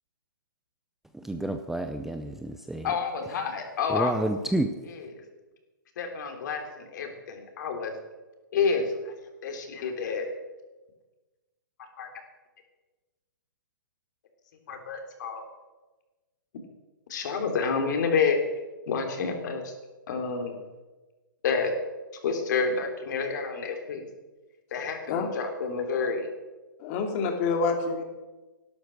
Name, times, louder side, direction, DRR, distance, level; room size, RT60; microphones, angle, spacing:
voice 1, 1.1-2.9 3.9-4.7, right 1 dB, 5° right, 7 dB, 0.6 m, -29 dB
voice 2, 2.8-4.1 4.9-5.2 6.0-7.9 8.5-9.1 9.4-10.3 12.0-12.1 14.7-15.4 17.1-18.4 18.9-19.7 20.1-20.5 21.4-21.7 22.2-24.0 24.7-26.3, left 5 dB, 55° left, 4 dB, 3.3 m, -29 dB
voice 3, 26.8-28.0, left 4 dB, 35° left, 4 dB, 2.7 m, -27 dB
12.0 x 12.0 x 6.5 m, 1.2 s
hypercardioid pair, 140°, 12 cm